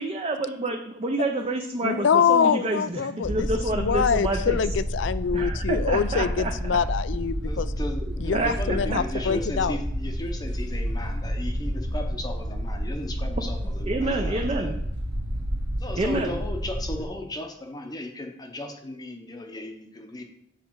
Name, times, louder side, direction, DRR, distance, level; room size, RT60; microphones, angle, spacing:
voice 1, 0.0-4.6 5.3-6.8 8.3-9.0 13.8-14.7 16.0-16.4, right 2 dB, 30° right, 3 dB, 0.5 m, -28 dB
voice 2, 1.8-3.5 3.7-7.7 8.2-9.8, left 7 dB, 65° left, 15 dB, 0.4 m, -25 dB
sound 1, 3.2-17.0, equal, 55° right, 1.5 m, -30 dB
voice 3, 7.4-14.7 15.8-20.2, left 1 dB, 20° left, 3 dB, 0.7 m, -36 dB
7.4 x 5.0 x 4.6 m, 0.73 s
head